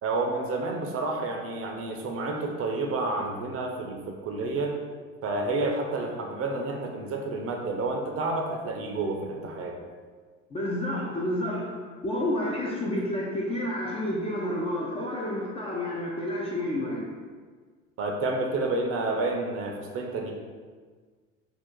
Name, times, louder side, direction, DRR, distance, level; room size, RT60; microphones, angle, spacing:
voice 1, 0.0-4.7 5.2-9.8 18.0-20.3, right 2 dB, 35° right, 1 dB, 0.6 m, -30 dB
voice 2, 10.5-11.8 12.0-17.1, left 1 dB, 15° left, -4 dB, 0.3 m, -30 dB
2.7 x 2.4 x 3.7 m, 1.5 s
hypercardioid pair, 75°, 39 cm